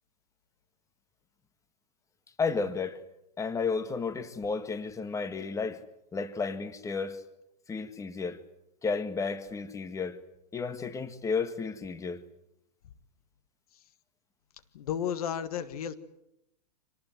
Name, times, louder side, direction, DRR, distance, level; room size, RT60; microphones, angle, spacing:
voice 1, 2.4-3.0 3.4-5.8 6.1-7.2 7.7-8.4 8.8-10.2 10.5-12.2, left 4 dB, 15° left, 1.7 m, -32 dB
voice 2, 14.7-15.9, left 9 dB, 60° left, 1.6 m, -32 dB
26.0 x 19.5 x 9.4 m
figure-of-eight pair, 100°, 21 cm